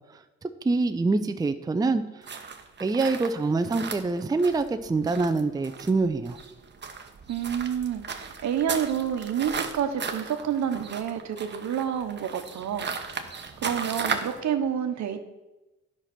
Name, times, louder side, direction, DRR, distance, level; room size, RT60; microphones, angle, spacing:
voice 1, 0.6-2.0 2.8-6.4, right 3 dB, 15° right, 9 dB, 0.5 m, -25 dB
sound 1, 2.2-14.4, right 5 dB, 35° right, 1.1 m, -36 dB
voice 2, 7.3-13.3 13.6-15.2, right 8 dB, 65° right, 8 dB, 1.1 m, -29 dB
9.9 x 5.9 x 6.0 m, 1.1 s
cardioid pair, 90°, 30 cm